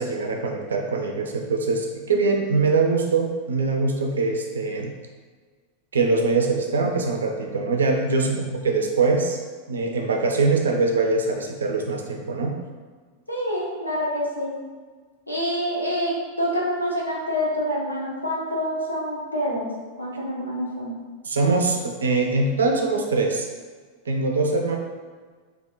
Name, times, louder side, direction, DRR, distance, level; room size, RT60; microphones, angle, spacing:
voice 1, 0.0-4.9 5.9-9.4 9.7-12.5 21.2-23.5 24.1-24.8, right 3 dB, 70° right, 2 dB, 0.5 m, -23 dB
voice 2, 13.3-14.6 15.3-20.9, equal, 85° left, -4 dB, 0.9 m, -27 dB
3.5 x 2.9 x 3.6 m, 1.5 s
figure-of-eight pair, 90°, 0 cm